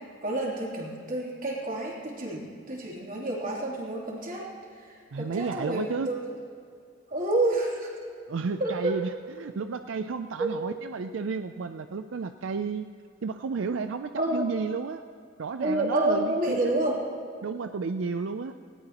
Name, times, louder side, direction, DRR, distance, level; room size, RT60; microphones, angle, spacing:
voice 1, 0.2-4.5 4.8-6.3 7.1-7.9 8.6-9.0 10.4-10.5 14.2-14.5 15.6-17.0, right 2 dB, 45° right, -4 dB, 3.2 m, -29 dB
voice 2, 5.1-6.1 8.3-12.9 13.2-15.0 15.4-16.6 17.4-18.5, right 4 dB, 85° right, 9 dB, 0.5 m, -32 dB
19.5 x 18.0 x 3.0 m, 2.3 s
head